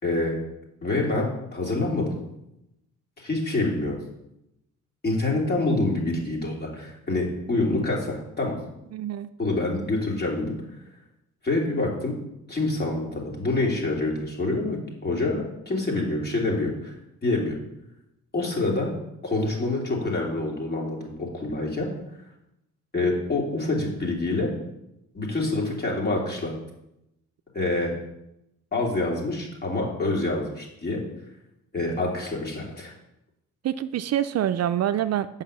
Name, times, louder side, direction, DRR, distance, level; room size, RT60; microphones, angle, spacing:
voice 1, 0.0-0.4 0.8-2.1 3.2-4.0 5.0-8.6 9.4-10.6 11.4-12.1 12.5-16.9 17.2-17.6 18.3-18.9 19.2-21.9 22.9-24.5 25.2-26.5 27.5-27.9 28.7-31.0 31.7-32.9, left 2 dB, 35° left, -2 dB, 3.3 m, -26 dB
voice 2, 8.9-9.3 33.6-35.4, right 11 dB, 55° right, 11 dB, 0.5 m, -26 dB
8.3 x 5.5 x 6.7 m, 0.84 s
cardioid pair, 90°, 30 cm